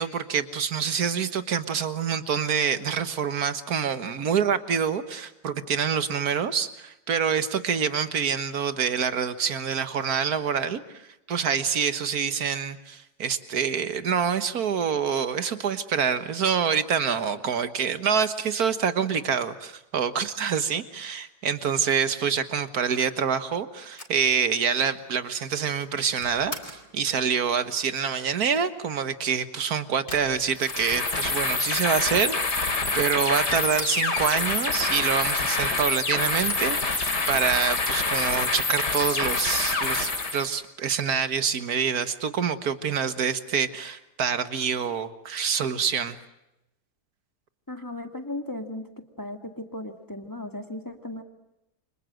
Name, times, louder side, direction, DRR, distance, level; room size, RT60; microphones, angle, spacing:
voice 1, 0.0-46.2, right 7 dB, 65° right, 11 dB, 1.9 m, -26 dB
sound 1, 23.9-26.9 30.1-31.2 31.5-31.6 31.8-32.6 32.9-34.2 36.5-37.9, left 1 dB, 30° left, 4.4 m, -42 dB
sound 2, 30.6-40.5, left 3 dB, 85° left, 3.8 m, -26 dB
voice 2, 47.7-48.9 49.2-51.2, left 1 dB, 10° left, 5 dB, 2.2 m, -36 dB
29.5 x 25.5 x 7.8 m, 0.92 s
omnidirectional pair, 1.8 m